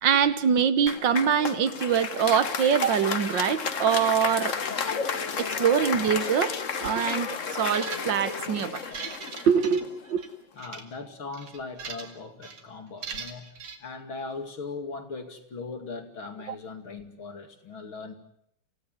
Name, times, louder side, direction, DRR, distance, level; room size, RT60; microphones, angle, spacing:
voice 1, 0.0-4.6 5.4-6.5 6.8-8.8 9.5-10.2, right 7 dB, 60° right, 1.8 m, -24 dB
Applause, 0.9-10.2, left 6 dB, 40° left, 1.4 m, -32 dB
sound 1, 7.7-8.3 8.8-10.3 10.6-10.8 11.3-12.2 12.4-12.6 13.0-13.8, right 5 dB, 80° right, 3.2 m, -39 dB
voice 2, 10.5-13.5 13.8-18.1, left 4 dB, 65° left, 3.4 m, -39 dB
27.0 x 17.0 x 9.4 m
omnidirectional pair, 2.4 m